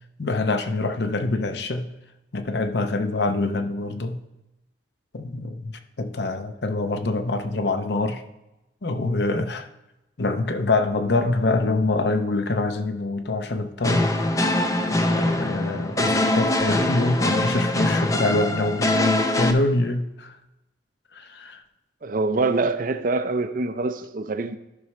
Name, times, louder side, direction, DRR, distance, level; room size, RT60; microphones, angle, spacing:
voice 1, 0.2-1.9 2.3-4.2 5.1-8.2 8.8-9.7 10.2-14.2 15.2-20.3 21.1-21.6, left 2 dB, 60° left, 0.7 m, -25 dB
sound 1, 13.8-19.5, left 1 dB, 15° left, 0.5 m, -23 dB
voice 2, 22.0-24.6, right 3 dB, 45° right, 0.5 m, -25 dB
13.5 x 6.1 x 3.2 m
head